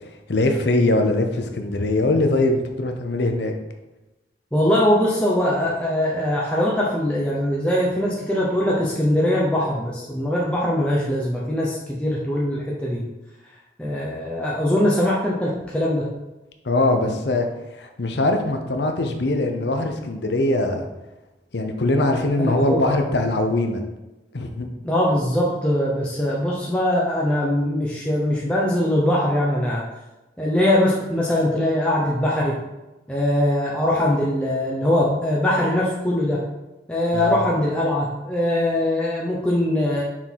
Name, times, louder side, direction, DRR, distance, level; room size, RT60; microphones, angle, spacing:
voice 1, 0.3-3.5 16.6-17.5 17.8-20.9 21.5-23.8 24.3-24.7 37.1-37.5, left 2 dB, 70° left, 5 dB, 0.8 m, -22 dB
voice 2, 4.5-13.0 13.8-16.1 22.4-23.0 24.8-29.8 30.4-32.6 33.1-36.4 36.9-40.0, left 1 dB, 5° left, -6 dB, 0.7 m, -21 dB
5.9 x 3.8 x 4.5 m, 1.0 s
head